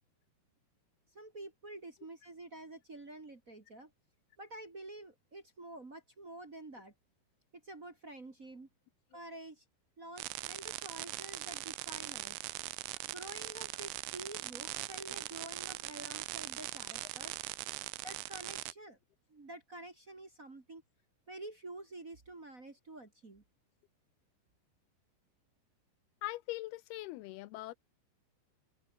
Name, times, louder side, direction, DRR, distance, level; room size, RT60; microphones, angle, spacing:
voice 1, 1.1-3.9 4.4-6.9 7.6-8.7 9.1-9.6 10.0-12.4 13.1-17.3 18.0-19.0 19.3-20.8 21.3-23.4, right 2 dB, 30° right, 1.6 m, -49 dB
sound 1, 10.2-18.7, right 19 dB, 85° right, 3.1 m, -41 dB
voice 2, 26.2-27.7, left 17 dB, 80° left, 2.4 m, -41 dB
omnidirectional pair, 5.0 m